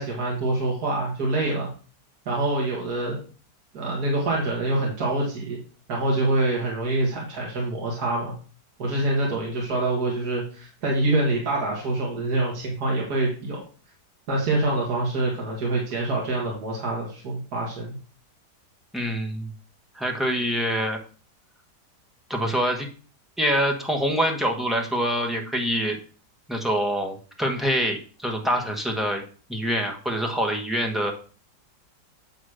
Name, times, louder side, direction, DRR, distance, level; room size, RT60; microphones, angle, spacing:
voice 1, 0.0-1.7 2.3-3.2 3.7-5.6 5.9-8.3 8.8-13.6 14.3-18.0, right 2 dB, 65° right, -3 dB, 2.3 m, -25 dB
voice 2, 18.9-19.5 19.9-21.0 22.3-22.9 23.4-26.0 26.5-29.2 29.5-31.1, equal, ahead, 1 dB, 1.1 m, -25 dB
9.1 x 3.1 x 6.3 m, 0.39 s
omnidirectional pair, 1.8 m